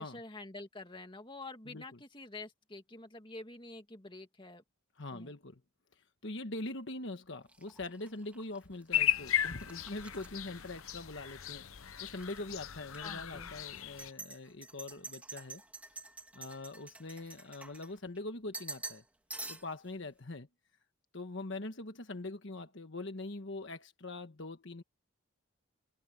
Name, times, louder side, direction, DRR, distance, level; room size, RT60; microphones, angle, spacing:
voice 1, 0.0-4.6 5.1-5.3 13.0-13.5, left 2 dB, 20° left, 2.2 m, -47 dB
voice 2, 5.0-5.6 6.0-11.7 12.0-15.6 16.3-19.0 19.5-20.5 21.1-24.8, left 2 dB, 55° left, 1.3 m, -43 dB
sound 1, 7.5-11.4 11.8-12.4 12.9-13.0 13.8-18.2 18.5-19.0 19.3-19.9, right 2 dB, 5° right, 1.6 m, -48 dB
sound 2, 8.9-14.1, left 12 dB, 75° left, 0.9 m, -36 dB
open air
head